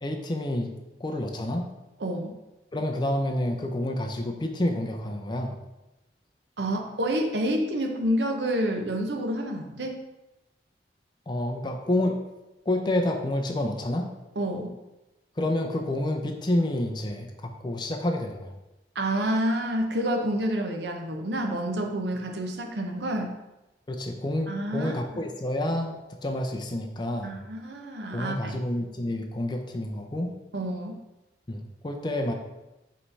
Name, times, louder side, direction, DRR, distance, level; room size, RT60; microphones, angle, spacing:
voice 1, 0.0-1.7 2.7-5.6 11.3-12.2 12.7-14.1 15.4-18.5 23.9-27.4 28.1-30.3 31.5-32.3, left 1 dB, 25° left, 2 dB, 0.5 m, -29 dB
voice 2, 2.0-2.3 6.6-10.0 14.4-14.7 18.9-23.3 24.5-25.2 27.2-28.5 30.5-31.0, right 1 dB, 70° right, 3 dB, 0.8 m, -28 dB
5.6 x 3.2 x 5.4 m, 0.98 s
head